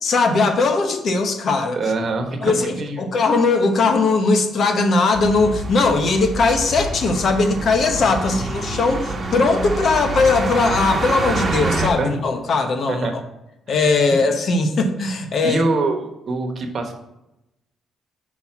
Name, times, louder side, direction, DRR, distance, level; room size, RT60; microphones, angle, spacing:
voice 1, 0.0-1.8 2.4-13.1 13.7-15.6, left 3 dB, 55° left, 6 dB, 0.9 m, -19 dB
voice 2, 1.7-3.0 8.1-8.4 12.0-12.2 12.9-13.1 14.1-14.2 15.4-16.9, right 3 dB, 45° right, 3 dB, 1.1 m, -24 dB
sound 1, 5.1-11.9, right 2 dB, 30° right, 1.1 m, -26 dB
5.7 x 4.2 x 5.8 m, 0.90 s
cardioid pair, 90°, 0 cm